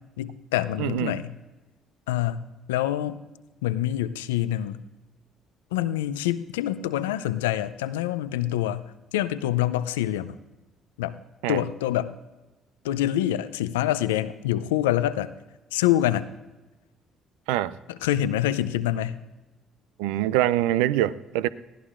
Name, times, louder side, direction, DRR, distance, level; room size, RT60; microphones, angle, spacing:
voice 1, 0.2-1.3 2.1-3.2 3.6-4.8 5.7-10.3 11.0-11.2 11.5-12.1 12.8-15.3 15.7-16.3 17.9-19.2, left 13 dB, 85° left, 14 dB, 0.4 m, -26 dB
voice 2, 0.8-1.2 11.4-11.6 17.5-17.7 20.0-21.5, right 14 dB, 80° right, 17 dB, 0.4 m, -24 dB
20.5 x 15.5 x 2.5 m, 1.1 s
hypercardioid pair, 55°, 0 cm